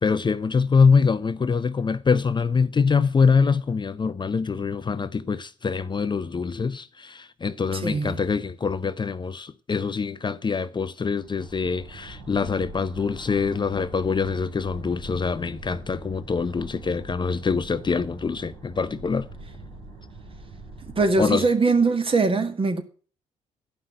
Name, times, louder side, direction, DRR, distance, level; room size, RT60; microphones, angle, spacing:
voice 1, 0.0-19.3 21.2-21.5, left 5 dB, 30° left, 0.6 m, -24 dB
voice 2, 7.7-8.1 21.0-22.8, right 3 dB, 40° right, 1.9 m, -21 dB
sound 1, 11.1-21.3, right 2 dB, 90° right, 3.8 m, -43 dB
11.5 x 5.7 x 7.8 m
supercardioid pair, 55°, 15 cm